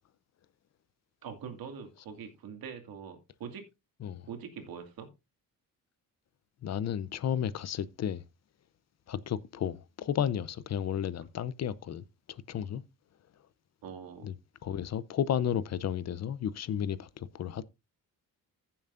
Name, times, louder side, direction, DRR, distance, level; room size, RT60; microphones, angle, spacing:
voice 1, 1.2-3.7 4.3-5.1 13.8-14.3, right 7 dB, 90° right, 2.3 m, -43 dB
voice 2, 6.6-8.2 9.1-12.8 14.2-14.3 14.6-17.6, left 9 dB, 50° left, 0.7 m, -33 dB
15.0 x 7.2 x 2.5 m
cardioid pair, 125°, 34 cm